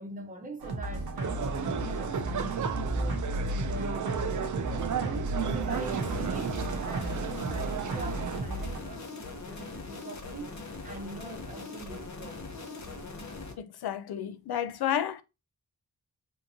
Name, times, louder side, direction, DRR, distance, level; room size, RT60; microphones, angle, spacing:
voice 1, 0.0-3.2 3.6-12.5, right 2 dB, 20° right, 0.7 m, -43 dB
sound 1, 0.6-8.8, right 1 dB, 75° right, 0.8 m, -34 dB
sound 2, 1.2-8.4, right 7 dB, 55° right, 0.4 m, -34 dB
sound 3, 5.7-13.5, left 3 dB, 50° left, 0.8 m, -41 dB
voice 2, 13.6-15.2, left 10 dB, 80° left, 0.5 m, -31 dB
3.6 x 2.9 x 2.7 m
wide cardioid pair, 115°, 37 cm